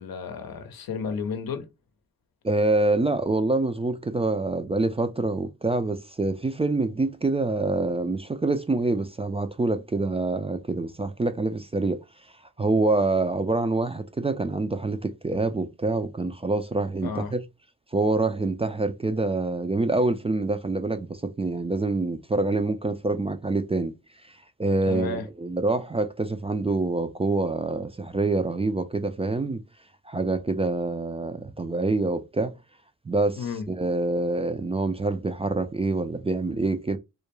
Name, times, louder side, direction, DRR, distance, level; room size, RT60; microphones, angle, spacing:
voice 1, 0.0-1.7 17.0-17.3 24.8-25.3 33.4-33.6, left 5 dB, 75° left, 0.7 m, -32 dB
voice 2, 2.4-12.0 12.6-17.4 17.9-23.9 24.2-29.6 30.1-32.5 33.1-37.0, right 2 dB, 15° right, 0.3 m, -26 dB
2.3 x 2.1 x 3.0 m
cardioid pair, 50°, 36 cm